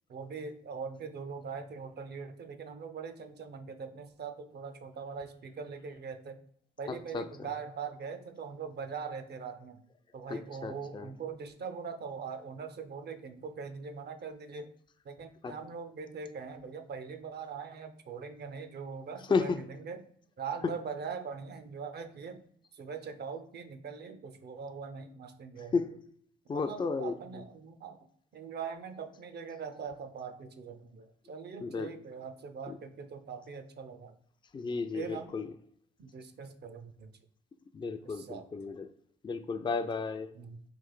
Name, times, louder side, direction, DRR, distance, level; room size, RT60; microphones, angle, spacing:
voice 1, 0.1-6.4 6.8-9.8 10.1-14.7 15.0-20.0 20.4-22.4 22.7-25.7 26.5-28.1 28.3-34.1 34.9-35.4 36.0-37.1 38.1-38.5 40.4-40.6, right 5 dB, 50° right, 8 dB, 0.6 m, -42 dB
voice 2, 6.9-7.3 10.3-11.1 15.4-15.5 19.3-19.6 25.7-25.9 26.5-27.2 31.6-31.9 34.5-35.5 37.7-38.9 39.2-40.3, left 4 dB, 20° left, 9 dB, 0.4 m, -33 dB
3.3 x 2.4 x 3.9 m, 0.64 s
hypercardioid pair, 50°, 21 cm